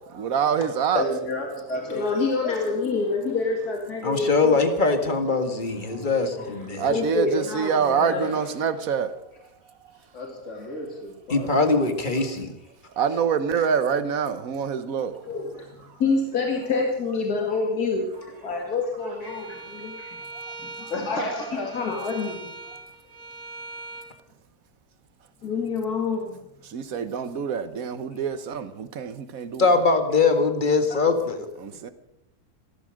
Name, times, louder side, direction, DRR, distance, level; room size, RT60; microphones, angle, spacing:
voice 1, 0.1-1.0 6.8-9.2 13.0-15.2 20.5-20.9 26.6-29.8 31.6-31.9, right 7 dB, 65° right, 1.4 m, -26 dB
voice 2, 0.9-2.0 2.4-2.5 10.1-11.5 18.2-18.3 18.6-18.7 19.2-19.3 20.0-20.1 20.9-21.8, left 2 dB, 50° left, 3.4 m, -31 dB
voice 3, 1.9-4.7 5.6-8.4 15.3-18.1 18.4-20.0 20.6-20.7 21.1-21.2 21.7-22.4 25.4-26.4 27.4-27.5, left 4 dB, 80° left, 2.4 m, -27 dB
voice 4, 4.0-6.9 11.3-12.5 29.6-31.4, left 3 dB, 30° left, 1.8 m, -22 dB
Bowed string instrument, 19.2-24.1, right 3 dB, 45° right, 2.7 m, -41 dB
15.5 x 14.0 x 6.4 m
omnidirectional pair, 1.6 m